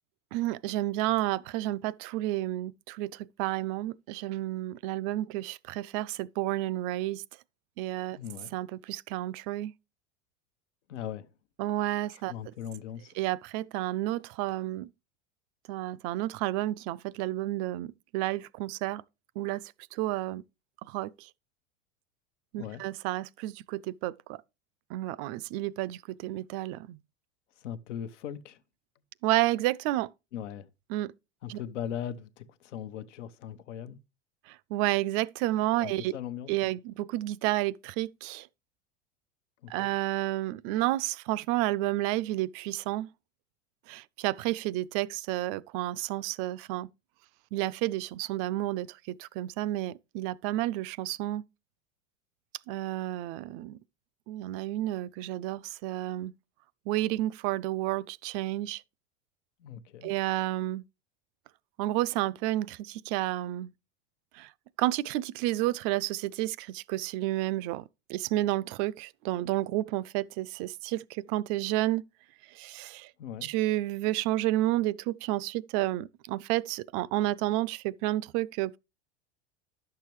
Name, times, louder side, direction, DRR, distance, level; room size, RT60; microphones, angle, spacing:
voice 1, 0.3-7.2 7.8-8.2 8.5-9.7 11.6-12.3 13.2-14.9 15.7-19.0 19.4-19.6 19.9-20.4 20.9-21.3 22.5-24.4 24.9-27.0 29.2-30.1 30.9-31.1 31.5-31.6 34.5-36.1 36.5-38.5 39.7-43.1 43.9-46.9 47.5-51.4 52.7-53.8 54.3-56.3 56.9-58.8 60.0-60.8 61.8-63.7 64.3-64.5 64.8-67.8 68.1-72.0 72.5-73.1 73.4-78.8, right 16 dB, 50° right, 0.4 m, -31 dB
voice 2, 8.2-8.5 10.9-11.3 12.1-13.1 22.6-22.8 27.6-28.6 30.3-30.7 31.4-34.0 35.8-36.5 39.6-39.9 59.6-60.1 73.2-73.5, left 9 dB, 80° left, 0.9 m, -39 dB
10.5 x 6.7 x 3.0 m
hypercardioid pair, 100°, 36 cm